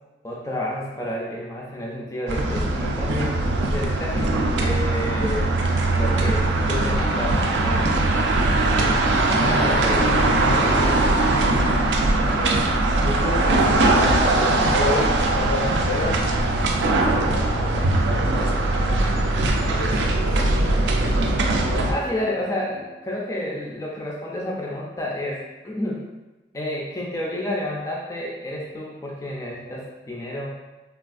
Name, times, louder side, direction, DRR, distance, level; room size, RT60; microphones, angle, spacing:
voice 1, 0.2-5.5 5.9-7.9 9.3-10.0 21.9-26.0 26.5-30.6, left 1 dB, 15° left, -3 dB, 0.3 m, -30 dB
sound 1, 2.3-21.9, right 2 dB, 75° right, 0.4 m, -20 dB
voice 2, 9.5-11.7 12.1-16.2 16.9-21.4 21.7-21.9, left 2 dB, 70° left, -2 dB, 0.6 m, -32 dB
3.3 x 2.3 x 2.4 m, 1.1 s
head